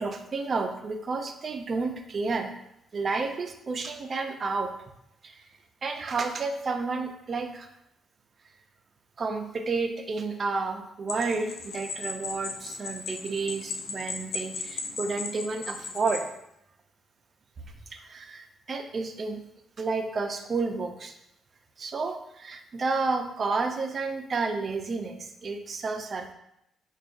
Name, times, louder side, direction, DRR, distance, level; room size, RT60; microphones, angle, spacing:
voice 1, 0.0-2.5 2.9-4.7 5.2-5.5 5.8-7.7 9.2-16.3 17.9-19.4 19.8-21.1 21.8-26.3, right 4 dB, 45° right, 5 dB, 0.4 m, -31 dB
sound 1, 11.1-16.3, left 4 dB, 70° left, 0.4 m, -37 dB
4.8 x 2.3 x 2.5 m, 0.80 s
cardioid pair, 90°, 0 cm